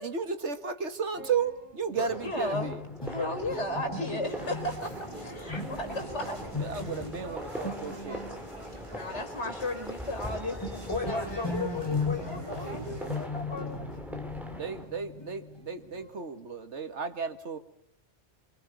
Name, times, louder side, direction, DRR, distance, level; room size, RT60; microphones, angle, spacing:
voice 1, 0.0-2.8 6.6-8.2 13.6-13.8 14.5-17.6, right 6 dB, 85° right, 9 dB, 2.0 m, -34 dB
sound 1, 1.2-8.9 9.4-9.6 9.9-10.3 10.6-16.2, left 3 dB, 20° left, 5.7 m, -38 dB
sound 2, 2.1-14.8, equal, ahead, 3.3 m, -42 dB
voice 2, 2.2-2.7 3.0-6.4 8.9-11.3, left 1 dB, 85° left, 6 dB, 4.5 m, -34 dB
voice 3, 3.1-3.5 5.5-5.6 10.9-13.9, left 3 dB, 65° left, 1 dB, 5.3 m, -36 dB
sound 3, 4.2-13.3, right 1 dB, 25° right, 3.6 m, -46 dB
26.5 x 24.5 x 5.5 m, 0.71 s
omnidirectional pair, 1.1 m